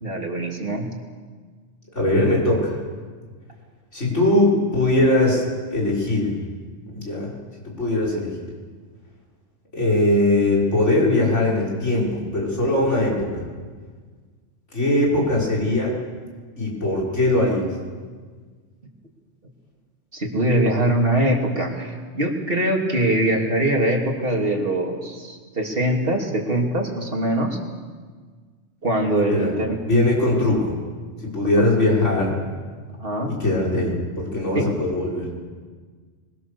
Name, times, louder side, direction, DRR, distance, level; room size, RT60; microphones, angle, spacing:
voice 1, 0.0-0.9 20.1-27.6 28.8-29.8 31.6-31.7 33.0-33.3 34.5-34.7, right 1 dB, 50° right, 1 dB, 3.1 m, -22 dB
voice 2, 1.9-2.8 3.9-5.4 5.7-6.4 6.9-7.4 7.6-8.3 9.7-13.4 14.7-16.0 16.6-17.7 29.3-29.5 29.9-30.8 31.2-32.3 33.3-35.3, left 1 dB, 85° left, -2 dB, 6.1 m, -20 dB
24.0 x 23.0 x 6.9 m, 1.5 s
omnidirectional pair, 1.2 m